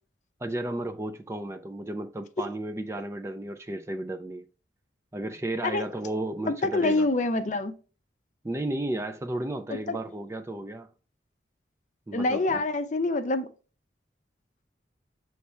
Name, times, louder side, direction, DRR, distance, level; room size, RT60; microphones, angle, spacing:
voice 1, 0.4-4.4 5.1-7.1 8.4-10.9 12.1-12.6, right 1 dB, 15° right, 0.3 m, -33 dB
voice 2, 6.4-7.7 9.9-10.0 12.1-13.5, left 2 dB, 40° left, 0.5 m, -26 dB
6.9 x 3.2 x 4.3 m
head